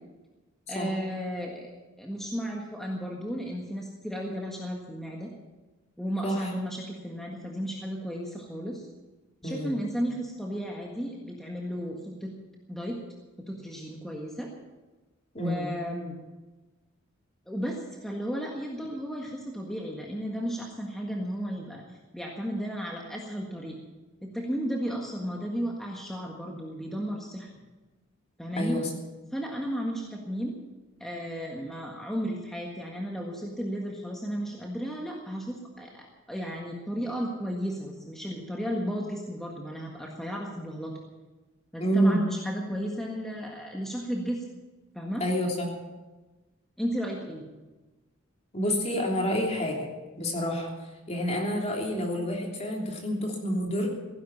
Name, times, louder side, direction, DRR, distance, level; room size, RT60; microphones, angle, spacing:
voice 1, 0.7-1.7 2.0-5.3 6.0-8.9 9.4-12.3 12.7-13.0 13.4-14.5 15.4-16.2 17.5-23.7 24.2-27.5 28.4-28.8 29.3-30.5 31.0-40.9 41.7-44.4 44.9-45.2 46.8-47.5, equal, ahead, -1 dB, 1.6 m, -34 dB
voice 2, 9.4-9.8 15.3-15.7 28.6-28.9 41.8-42.2 45.2-45.7 48.5-49.9 50.2-50.7 51.1-53.9, equal, 30° left, 0 dB, 3.1 m, -28 dB
16.5 x 11.0 x 7.3 m, 1.2 s
head